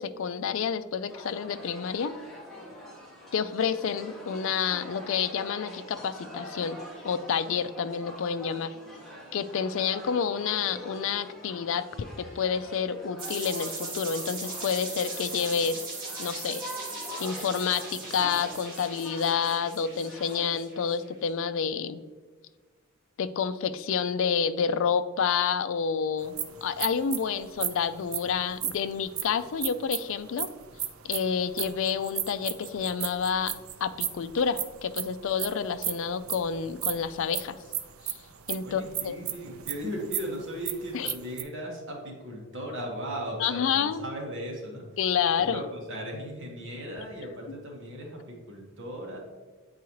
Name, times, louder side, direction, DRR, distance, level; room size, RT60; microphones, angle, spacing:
voice 1, 0.0-2.1 3.3-6.8 7.0-8.7 9.3-15.8 16.2-16.6 17.2-22.0 23.2-26.4 26.6-30.5 31.0-37.6 38.0-38.1 38.5-39.2 40.9-41.1 43.4-44.0 45.0-45.6, left 6 dB, 65° left, 12 dB, 0.4 m, -29 dB
sound 1, 1.1-20.5, left 1 dB, ahead, 1.4 m, -44 dB
sound 2, 13.2-21.0, right 3 dB, 45° right, 2.0 m, -39 dB
sound 3, 26.2-41.4, right 11 dB, 85° right, 0.5 m, -35 dB
voice 2, 38.6-44.9 45.4-49.2, equal, 60° right, -1 dB, 1.6 m, -37 dB
8.3 x 4.7 x 3.1 m, 1.4 s
head